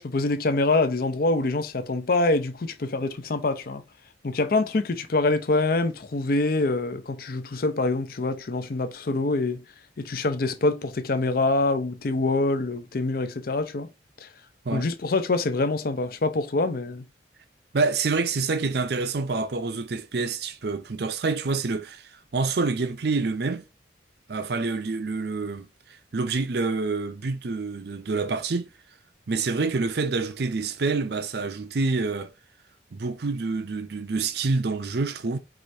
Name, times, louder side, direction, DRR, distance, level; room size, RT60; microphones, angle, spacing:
voice 1, 0.0-3.8 4.2-9.6 10.0-13.9 14.2-14.3 14.7-17.0, left 2 dB, 50° left, 0.5 m, -25 dB
voice 2, 17.7-23.6 24.3-25.7 26.1-28.7 29.3-32.3 32.9-35.4, right 4 dB, 55° right, 0.5 m, -27 dB
4.8 x 3.2 x 2.6 m
head